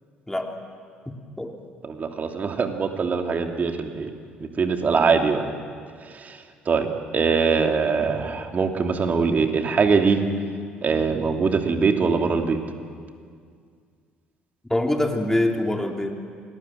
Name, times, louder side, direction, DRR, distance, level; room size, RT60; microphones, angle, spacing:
voice 1, 1.8-4.1 4.6-5.4 6.1-6.4 6.7-10.2 10.8-12.6, right 5 dB, 40° right, 4 dB, 2.8 m, -22 dB
voice 2, 14.7-16.1, left 1 dB, 10° left, 2 dB, 3.2 m, -24 dB
28.5 x 20.0 x 7.7 m, 2.1 s
hypercardioid pair, 55°, 4 cm